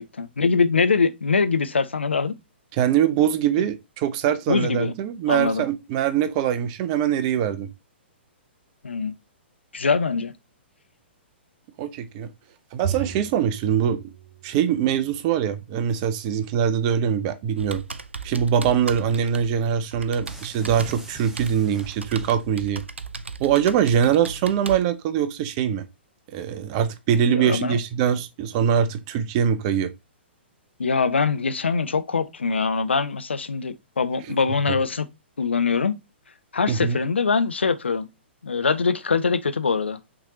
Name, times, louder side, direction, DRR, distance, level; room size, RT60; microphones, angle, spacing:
voice 1, 0.0-2.3 4.5-4.9 5.3-5.6 8.8-9.1 9.7-10.3 27.3-27.8 30.8-35.1 35.4-36.0 36.5-38.1 38.4-40.0, left 5 dB, 75° left, 0.5 m, -23 dB
voice 2, 2.8-7.7 11.8-12.3 12.7-14.0 14.4-17.8 18.2-22.8 23.4-25.8 26.3-29.9 36.7-37.0, right 8 dB, 35° right, 0.6 m, -23 dB
Bowed string instrument, 12.8-15.4, right 8 dB, 65° right, 1.3 m, -35 dB
Computer keyboard, 17.6-24.8, right 4 dB, 80° right, 0.4 m, -37 dB
sound 1, 20.2-22.7, right 2 dB, 5° right, 0.9 m, -45 dB
6.0 x 3.3 x 2.7 m
figure-of-eight pair, 115°, 6 cm